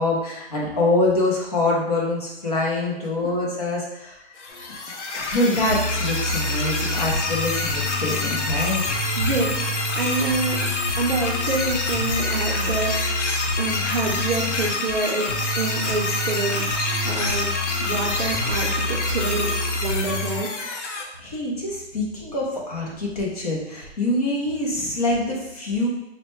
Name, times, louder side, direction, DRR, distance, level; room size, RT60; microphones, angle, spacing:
voice 1, 0.0-4.5 5.1-8.8 21.2-25.9, left 2 dB, 35° left, -3 dB, 0.7 m, -25 dB
sound 1, 4.4-21.0, left 3 dB, 90° left, 0.8 m, -27 dB
sound 2, 4.5-4.9 5.7-20.4, left 1 dB, 60° left, 0.9 m, -29 dB
voice 2, 9.2-13.3 13.6-15.3 15.6-16.7 17.0-17.5 17.8-20.5, right 3 dB, 55° right, -3 dB, 0.6 m, -27 dB
4.0 x 2.2 x 3.1 m, 0.91 s
hypercardioid pair, 180°, 35 cm